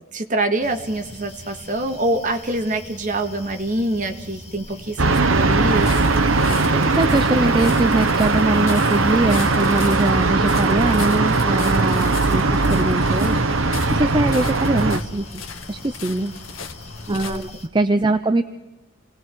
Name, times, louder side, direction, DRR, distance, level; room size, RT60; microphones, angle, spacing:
voice 1, 0.1-5.9 17.1-17.4, right 2 dB, 40° right, 5 dB, 1.9 m, -25 dB
sound 1, 0.6-17.7, left 1 dB, 30° left, 2.2 m, -41 dB
sound 2, 5.0-15.0, right 3 dB, 75° right, 1.0 m, -19 dB
sound 3, 5.6-17.5, left 5 dB, 70° left, 1.6 m, -37 dB
voice 2, 6.7-13.4 13.9-15.4 15.7-16.3 17.1-18.4, right 2 dB, 25° right, 9 dB, 0.7 m, -22 dB
29.5 x 20.0 x 4.7 m, 1.0 s
head